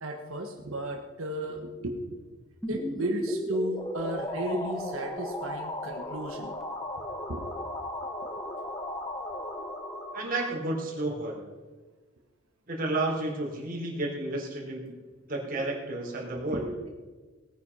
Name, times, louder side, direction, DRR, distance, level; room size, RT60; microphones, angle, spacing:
voice 1, 0.0-2.2 2.7-6.5 7.3-7.5 15.6-15.7 16.5-16.9, right 1 dB, 85° right, 3 dB, 1.4 m, -34 dB
sound 1, 2.6-10.5, equal, ahead, 1.5 m, -38 dB
sound 2, 3.8-11.1, left 2 dB, 25° left, 0.9 m, -38 dB
voice 2, 10.1-11.4 12.7-14.9 15.3-16.7, right 2 dB, 40° right, -2 dB, 4.1 m, -31 dB
18.5 x 9.5 x 5.6 m, 1.4 s
head